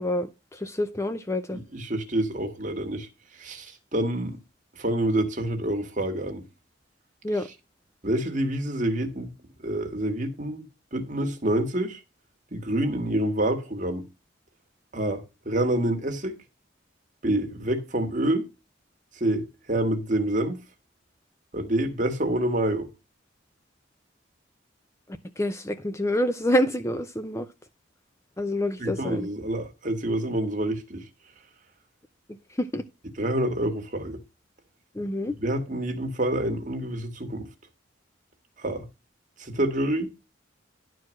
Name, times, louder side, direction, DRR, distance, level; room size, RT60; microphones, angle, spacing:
voice 1, 0.0-1.6 7.2-7.5 25.4-27.5 28.4-29.3 32.6-32.8 34.9-35.3, left 1 dB, 15° left, 0.5 m, -27 dB
voice 2, 1.5-3.1 3.4-4.4 4.8-6.4 8.0-9.3 9.6-12.0 12.5-14.0 14.9-16.4 17.2-18.4 19.2-20.6 21.5-22.9 28.8-31.1 33.2-34.2 35.4-37.5 38.6-38.8 39.4-40.1, right 1 dB, 40° right, 1.7 m, -27 dB
11.0 x 4.5 x 6.3 m
head